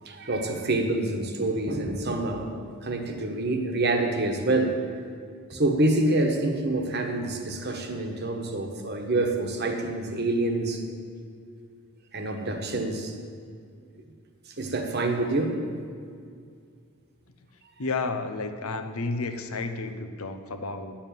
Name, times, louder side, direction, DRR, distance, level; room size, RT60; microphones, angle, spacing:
voice 1, 0.0-2.5 2.8-4.8 5.5-10.8 12.1-13.1 14.6-15.6, right 2 dB, 50° right, 4 dB, 1.3 m, -26 dB
voice 2, 17.8-21.0, left 3 dB, 80° left, 7 dB, 0.9 m, -31 dB
9.6 x 7.2 x 9.1 m, 2.2 s
head